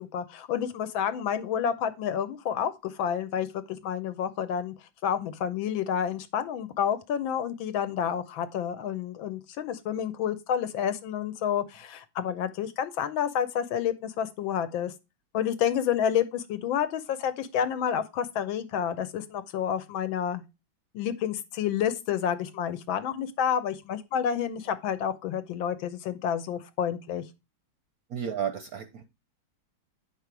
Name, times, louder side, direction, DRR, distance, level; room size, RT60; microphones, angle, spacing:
voice 1, 0.0-3.5 3.8-4.7 5.0-14.9 15.3-20.4 20.9-27.2, left 8 dB, 75° left, 1.6 m, -29 dB
voice 2, 28.1-29.0, right 8 dB, 65° right, 0.9 m, -32 dB
8.4 x 5.4 x 4.6 m
omnidirectional pair, 2.2 m